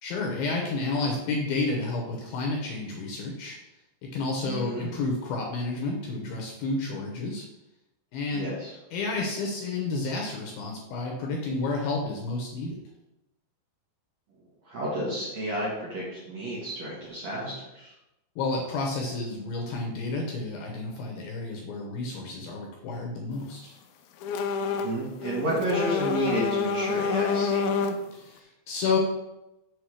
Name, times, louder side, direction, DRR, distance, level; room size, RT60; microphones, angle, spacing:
voice 1, 0.0-3.6 4.0-7.4 8.1-8.5 8.9-12.8 18.4-23.8 28.1-29.0, left 3 dB, 70° left, -1 dB, 2.5 m, -30 dB
voice 2, 4.4-4.9 8.3-8.7 14.6-17.9 24.8-27.7, right 1 dB, 55° right, -6 dB, 2.0 m, -31 dB
sound 1, 24.2-25.0 25.2-28.1, left 5 dB, 85° left, 3.0 m, -27 dB
7.8 x 3.7 x 6.3 m, 0.92 s
omnidirectional pair, 5.2 m